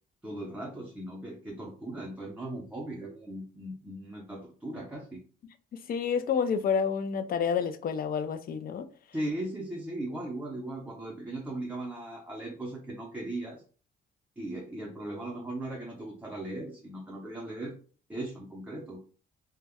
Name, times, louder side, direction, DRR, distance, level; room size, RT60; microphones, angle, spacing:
voice 1, 0.2-5.2 9.1-13.6 14.4-17.7 18.1-19.0, right 1 dB, 10° right, 0.6 m, -38 dB
voice 2, 5.7-8.9, left 6 dB, 50° left, 0.4 m, -29 dB
2.2 x 2.1 x 3.4 m
cardioid pair, 90°, 20 cm